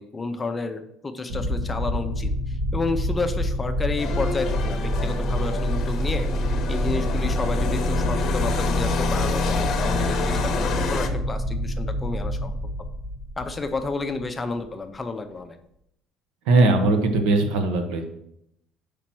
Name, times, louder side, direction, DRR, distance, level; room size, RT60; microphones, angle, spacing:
voice 1, 0.0-6.3 6.7-12.5 13.4-15.6, left 3 dB, 15° left, 8 dB, 0.5 m, -31 dB
sound 1, 1.3-14.3, equal, 60° right, 1.1 m, -26 dB
sound 2, 4.0-11.1, left 5 dB, 45° left, 0.8 m, -29 dB
voice 2, 16.5-18.0, right 2 dB, 85° right, 5 dB, 1.1 m, -19 dB
5.1 x 4.3 x 6.0 m, 0.77 s
cardioid pair, 155°, 0 cm